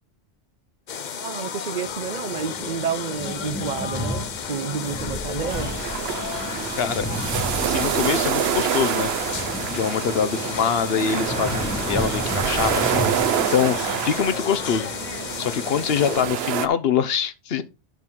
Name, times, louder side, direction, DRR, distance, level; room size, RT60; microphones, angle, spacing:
sound 1, 0.9-16.2, left 7 dB, 50° left, 0.7 m, -33 dB
voice 1, 1.1-5.7, right 6 dB, 55° right, 0.6 m, -30 dB
sound 2, 1.9-16.4, equal, 10° left, 1.0 m, -34 dB
sound 3, 5.5-16.7, right 9 dB, 80° right, 0.9 m, -27 dB
voice 2, 7.6-9.1 9.7-13.0 13.5-14.9 15.4-17.6, left 7 dB, 75° left, 1.0 m, -24 dB
10.5 x 6.0 x 3.7 m
omnidirectional pair, 1.0 m